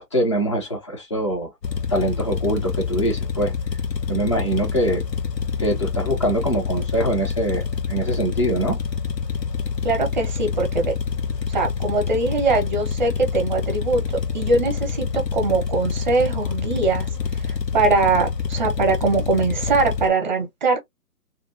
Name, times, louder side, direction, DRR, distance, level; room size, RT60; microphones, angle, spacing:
voice 1, 0.0-1.5 1.9-3.5 4.1-5.0 5.6-8.8, right 1 dB, 20° left, 0.5 m, -23 dB
sound 1, 1.6-20.1, left 5 dB, 90° left, 0.8 m, -27 dB
voice 2, 9.8-10.9 11.5-14.0 14.3-17.1 17.4-20.8, right 3 dB, 30° right, 0.6 m, -22 dB
2.5 x 2.3 x 2.5 m
figure-of-eight pair, 140°, 48 cm